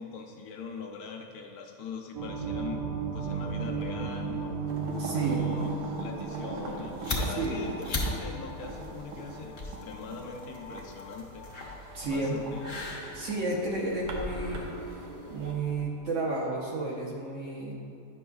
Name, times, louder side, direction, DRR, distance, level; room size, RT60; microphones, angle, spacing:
voice 1, 0.0-2.8 3.1-4.6 5.2-5.7 6.0-11.5 12.0-12.7, left 5 dB, 75° left, 2 dB, 1.1 m, -42 dB
sound 1, 2.1-15.6, right 5 dB, 90° right, 1.4 m, -37 dB
sound 2, 4.7-15.5, right 2 dB, 70° right, 1.2 m, -41 dB
voice 2, 5.0-5.4 7.4-7.7 11.9-12.4 12.6-12.8 13.1-15.0 15.3-17.7, right 3 dB, 55° right, -2 dB, 1.1 m, -32 dB
sound 3, 6.7-15.8, left 2 dB, 40° left, 0.8 m, -39 dB
9.4 x 6.1 x 2.3 m, 2.6 s
omnidirectional pair, 1.7 m